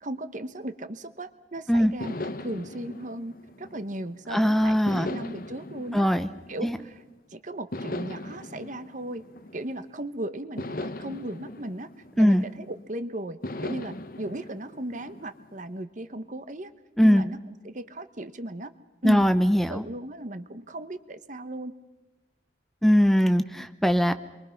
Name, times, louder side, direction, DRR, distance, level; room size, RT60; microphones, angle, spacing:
voice 1, 0.0-3.3 3.6-6.1 6.5-7.0 7.3-9.2 9.5-11.9 12.2-16.7 17.0-18.7 19.0-19.2 19.7-21.7, right 1 dB, 45° right, 11 dB, 1.1 m, -36 dB
sound 1, 2.0-4.3 4.9-7.1 7.7-10.0 10.6-12.8 13.4-15.7, left 1 dB, 50° left, 1.0 m, -39 dB
voice 2, 4.3-5.1 5.9-6.3 6.6-6.8 12.2-12.4 17.0-17.2 19.0-19.8 22.8-24.1, equal, ahead, 10 dB, 0.7 m, -20 dB
28.5 x 23.5 x 5.9 m, 1.1 s
head